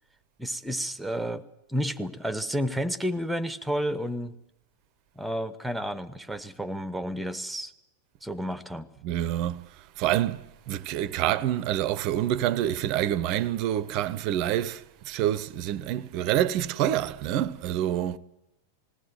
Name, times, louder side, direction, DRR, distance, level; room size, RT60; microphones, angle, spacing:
voice 1, 0.4-1.4 1.7-4.4 5.2-7.7 8.2-8.9, equal, 5° right, 0.9 m, -31 dB
voice 2, 9.0-9.7 10.0-18.2, right 12 dB, 40° right, 0.6 m, -27 dB
20.0 x 16.0 x 9.1 m
figure-of-eight pair, 90°, 0 cm